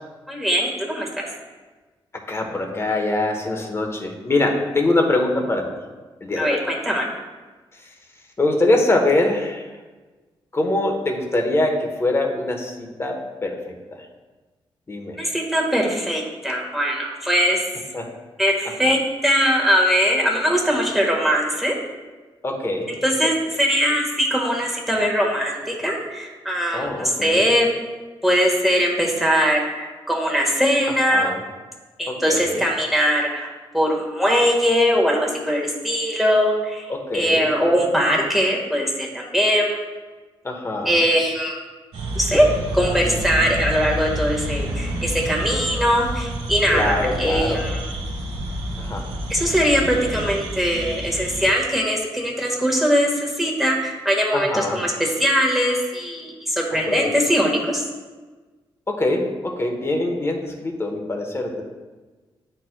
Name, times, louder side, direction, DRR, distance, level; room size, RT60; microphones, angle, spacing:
voice 1, 0.3-1.3 6.4-7.1 15.2-17.7 18.4-21.7 23.0-27.7 28.2-31.3 32.0-39.8 40.8-41.6 42.1-42.5 42.7-47.9 49.3-57.8, equal, ahead, -2 dB, 1.5 m, -21 dB
voice 2, 2.3-5.6 6.2-6.6 8.4-9.7 10.5-14.0 14.9-15.2 17.9-18.1 22.4-23.0 26.7-27.5 31.1-31.4 32.1-32.6 36.9-37.8 40.4-41.0 46.7-47.6 48.8-49.1 54.3-54.8 56.9-57.1 58.9-61.6, left 2 dB, 25° left, 2 dB, 1.0 m, -23 dB
sound 1, 41.9-51.5, equal, 90° right, 1.1 m, -28 dB
9.9 x 4.4 x 2.2 m, 1.3 s
cardioid pair, 85°, 10 cm